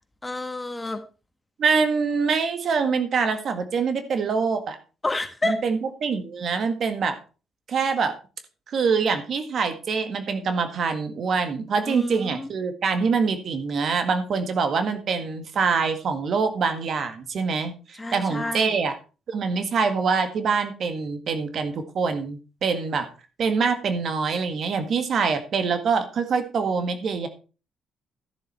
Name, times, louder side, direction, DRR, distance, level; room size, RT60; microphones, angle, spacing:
voice 1, 0.2-1.0 5.0-5.6 11.8-12.5 18.0-18.7, left 2 dB, 15° left, 8 dB, 1.6 m, -29 dB
voice 2, 1.6-4.8 5.4-7.2 7.7-8.1 8.7-19.0 19.3-23.1 23.4-27.3, right 5 dB, 60° right, 8 dB, 1.8 m, -25 dB
13.0 x 7.3 x 4.3 m, 0.34 s
cardioid pair, 90°, 0 cm